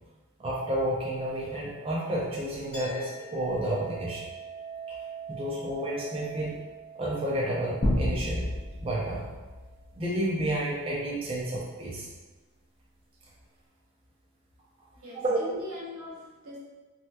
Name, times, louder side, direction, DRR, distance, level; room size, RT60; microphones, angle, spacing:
voice 1, 0.4-4.3 4.9-5.0 5.3-6.6 6.9-8.5 8.8-9.3 10.0-12.1 15.1-15.4, right 1 dB, 25° right, -6 dB, 0.4 m, -30 dB
Chink clink, 2.7-9.8, right 5 dB, 5° left, 1.4 m, -44 dB
sound 1, 7.8-10.6, left 1 dB, 40° left, 0.5 m, -31 dB
voice 2, 15.0-16.6, left 1 dB, 80° right, -4 dB, 0.8 m, -41 dB
3.1 x 2.8 x 2.2 m, 1.2 s
head